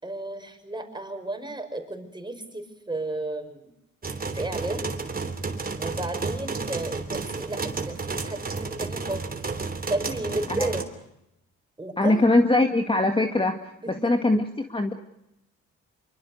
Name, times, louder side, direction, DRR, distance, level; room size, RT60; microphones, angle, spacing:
voice 1, 0.0-3.6 4.3-4.9 5.8-9.3 9.9-10.9 11.8-12.3 13.8-14.1, right 2 dB, 15° right, 7 dB, 5.7 m, -33 dB
sound 1, 4.0-10.8, right 4 dB, 30° right, 3.2 m, -32 dB
voice 2, 12.0-13.6 14.0-14.4 14.7-14.9, left 2 dB, 15° left, 5 dB, 2.1 m, -21 dB
26.0 x 24.5 x 6.7 m, 0.83 s
cardioid pair, 90°, 30 cm